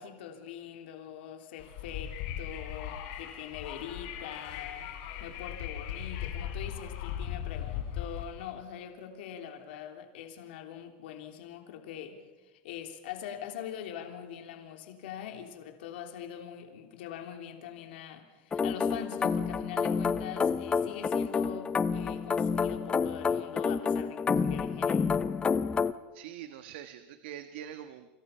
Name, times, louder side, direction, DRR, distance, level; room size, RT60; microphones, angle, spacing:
voice 1, 0.0-4.9 5.2-25.1, left 9 dB, 80° left, 4 dB, 3.3 m, -43 dB
Wind, 1.6-8.2, left 9 dB, 65° left, 4.4 m, -38 dB
sound 1, 18.5-25.9, left 5 dB, 15° left, 0.7 m, -29 dB
voice 2, 26.1-28.1, right 10 dB, 75° right, 9 dB, 1.5 m, -44 dB
28.5 x 26.0 x 5.7 m, 1.2 s
supercardioid pair, 145°, 6 cm